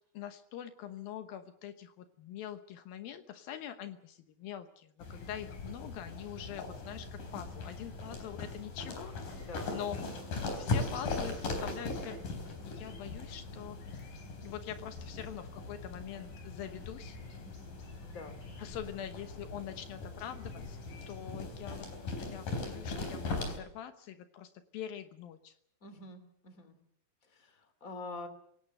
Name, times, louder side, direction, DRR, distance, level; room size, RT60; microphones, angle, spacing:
voice 1, 0.1-10.0 10.6-14.1 14.4-17.2 18.6-25.5, left 10 dB, 75° left, 9 dB, 2.8 m, -44 dB
sound 1, 5.0-23.6, left 3 dB, 60° left, 5.4 m, -40 dB
voice 2, 18.0-18.4 25.8-26.8 27.2-28.3, left 3 dB, 25° left, 10 dB, 3.1 m, -46 dB
27.0 x 17.5 x 6.7 m, 0.69 s
omnidirectional pair, 4.3 m